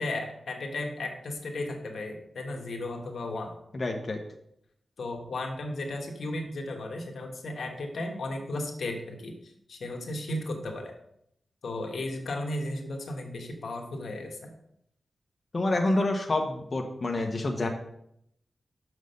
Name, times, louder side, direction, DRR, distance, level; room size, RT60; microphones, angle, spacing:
voice 1, 0.0-3.5 5.0-10.9 11.6-14.5, left 2 dB, 80° left, 3 dB, 1.3 m, -35 dB
voice 2, 3.7-4.2 15.5-17.7, left 2 dB, 40° left, 2 dB, 1.0 m, -27 dB
6.4 x 6.3 x 5.4 m, 0.74 s
wide cardioid pair, 105°, 0 cm